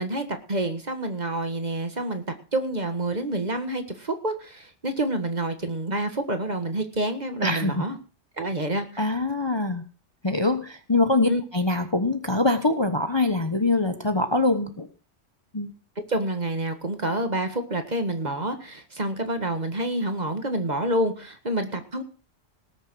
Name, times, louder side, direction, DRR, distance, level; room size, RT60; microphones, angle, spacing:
voice 1, 0.0-2.2 2.5-8.0 8.4-9.0 11.3-11.4 16.1-22.0, right 1 dB, 35° right, 7 dB, 1.7 m, -28 dB
voice 2, 7.4-7.8 9.0-9.8 10.2-14.9 15.5-15.7, left 2 dB, 25° left, 7 dB, 1.0 m, -23 dB
19.0 x 6.8 x 6.2 m, 0.38 s
omnidirectional pair, 1.3 m